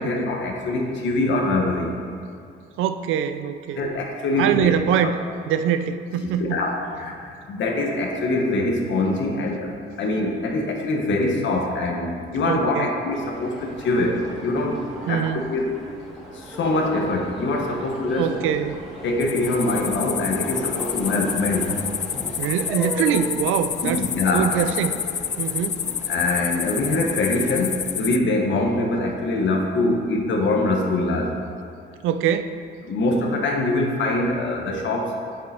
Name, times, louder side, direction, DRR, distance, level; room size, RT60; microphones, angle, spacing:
voice 1, 0.0-1.9 3.8-4.7 5.0-5.1 6.4-9.7 10.0-14.8 15.1-15.2 15.5-15.7 16.3-18.3 19.0-21.8 23.8-24.5 26.1-31.3 32.8-35.1, left 2 dB, 70° left, 1 dB, 1.5 m, -23 dB
voice 2, 2.8-3.8 4.4-5.2 5.5-6.6 12.4-12.9 15.1-15.5 18.2-18.9 22.4-24.0 24.3-25.0 25.4-25.9 32.0-32.5, right 9 dB, 90° right, 10 dB, 0.5 m, -23 dB
sound 1, 13.1-27.5, equal, ahead, 2.3 m, -37 dB
sound 2, 19.2-28.2, left 8 dB, 40° left, 0.4 m, -29 dB
7.8 x 7.7 x 4.4 m, 2.4 s
cardioid pair, 90°, 20 cm